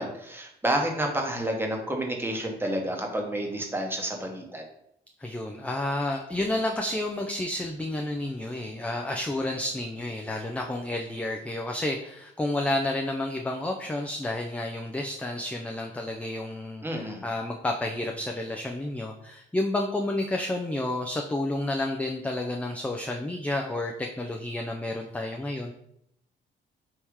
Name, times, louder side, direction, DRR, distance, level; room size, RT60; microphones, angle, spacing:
voice 1, 0.0-4.6 16.8-17.2, right 1 dB, 10° right, 1 dB, 0.9 m, -30 dB
voice 2, 5.2-25.7, left 1 dB, 5° left, 2 dB, 0.4 m, -30 dB
3.5 x 2.8 x 4.6 m, 0.75 s
cardioid pair, 90°, 20 cm